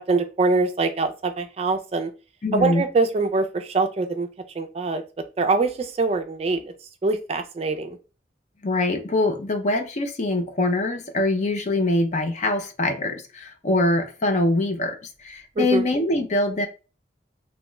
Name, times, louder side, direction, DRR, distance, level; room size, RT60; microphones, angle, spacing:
voice 1, 0.1-2.1 2.5-4.3 4.6-5.0 5.4-6.7 7.0-8.0 15.6-15.9, right 3 dB, 35° right, 0.4 m, -23 dB
voice 2, 2.4-2.8 8.6-16.7, left 2 dB, 40° left, 0.5 m, -23 dB
2.9 x 2.2 x 3.0 m
head